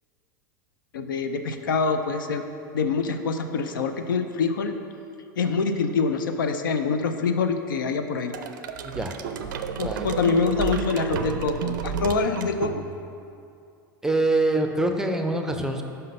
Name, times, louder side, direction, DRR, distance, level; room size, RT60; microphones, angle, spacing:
voice 1, 0.9-2.4 2.7-4.7 5.4-8.3 9.8-12.8, left 5 dB, 70° left, 7 dB, 0.5 m, -25 dB
sound 1, 8.3-13.2, right 7 dB, 65° right, 0.4 m, -31 dB
voice 2, 8.8-9.5 9.8-10.1 14.0-15.8, right 2 dB, 5° right, 4 dB, 0.5 m, -25 dB
5.6 x 5.4 x 5.3 m, 2.5 s
figure-of-eight pair, 90°, 11 cm